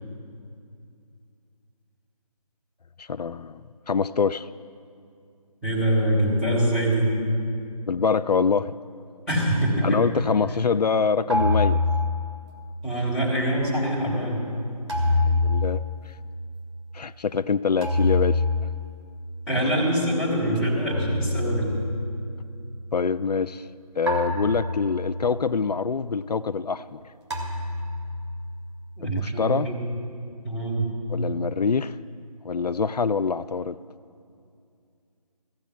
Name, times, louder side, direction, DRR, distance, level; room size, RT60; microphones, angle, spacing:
voice 1, 3.0-3.6 3.9-4.5 7.9-8.7 9.8-11.8 15.3-15.8 16.9-18.4 19.6-19.7 22.9-23.7 24.0-27.0 29.0-29.7 31.1-32.0 32.4-33.8, left 5 dB, 80° left, 14 dB, 0.4 m, -25 dB
voice 2, 5.6-7.1 9.3-10.0 12.8-14.4 19.5-21.7 29.0-29.8 30.4-30.9, right 1 dB, ahead, -11 dB, 2.6 m, -24 dB
sound 1, 11.3-13.1 14.9-16.7 17.8-19.6 20.9-22.3 24.1-25.3 27.3-28.5, left 2 dB, 45° right, 2.3 m, -26 dB
15.0 x 7.0 x 8.4 m, 2.4 s
figure-of-eight pair, 155°, 20 cm